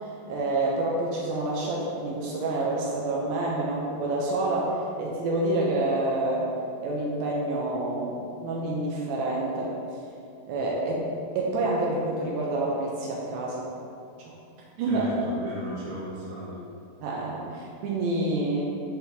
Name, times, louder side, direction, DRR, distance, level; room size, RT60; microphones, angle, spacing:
voice 1, 0.0-6.5 6.8-9.7 10.5-11.1 11.4-13.7 14.2-14.3 14.8-15.1 17.0-18.7, right 2 dB, 80° right, -3 dB, 2.5 m, -28 dB
voice 2, 14.8-16.6 18.4-18.7, right 1 dB, 50° right, -8 dB, 1.0 m, -36 dB
8.3 x 4.2 x 4.1 m, 2.5 s
omnidirectional pair, 4.2 m